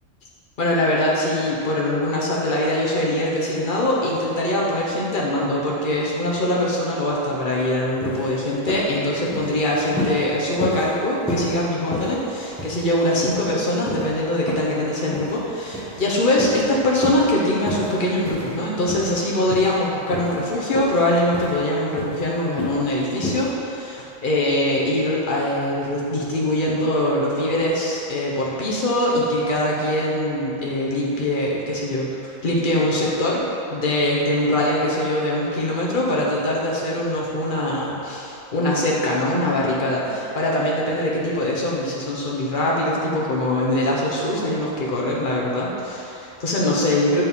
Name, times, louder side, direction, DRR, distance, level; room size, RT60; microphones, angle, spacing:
voice 1, 0.6-33.4 33.7-47.2, left 1 dB, 40° left, -4 dB, 1.2 m, -22 dB
sound 1, 7.5-7.7 8.0-8.3 8.7-8.9 9.3-9.6 10.0-10.2 10.6-10.9 11.3-11.5 11.9-12.2 12.6-12.9 13.2-13.5 13.9-14.0 14.5-14.7 15.1-15.4 15.7-16.0 16.4-16.6 17.0-17.3 17.6-18.0 18.2-18.6 18.9-19.2 19.5-19.8 20.1-20.4 20.7-21.1 21.3-21.6 22.0-22.2 22.6-22.8 23.2-23.5, left 1 dB, 5° left, 1.1 m, -29 dB
7.2 x 3.9 x 5.6 m, 2.9 s
omnidirectional pair, 1.4 m